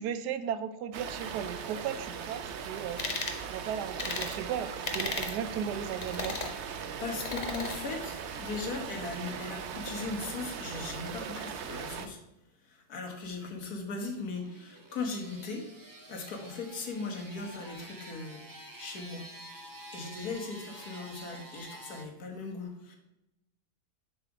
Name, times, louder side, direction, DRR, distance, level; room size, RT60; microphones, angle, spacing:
voice 1, 0.0-6.3, right 8 dB, 85° right, 12 dB, 1.2 m, -36 dB
sound 1, 0.9-12.1, right 7 dB, 65° right, 0.7 m, -39 dB
sound 2, 3.0-3.4 4.0-4.3 4.8-5.4 6.0-6.5 7.2-7.8, left 3 dB, 40° left, 0.6 m, -35 dB
voice 2, 7.0-12.2 12.7-15.7 16.1-18.4 18.8-19.3 19.9-23.0, left 4 dB, 70° left, 2 dB, 1.7 m, -38 dB
sound 3, 14.2-22.0, right 1 dB, 35° right, 0.3 m, -49 dB
7.0 x 4.2 x 4.8 m, 0.91 s
omnidirectional pair, 1.7 m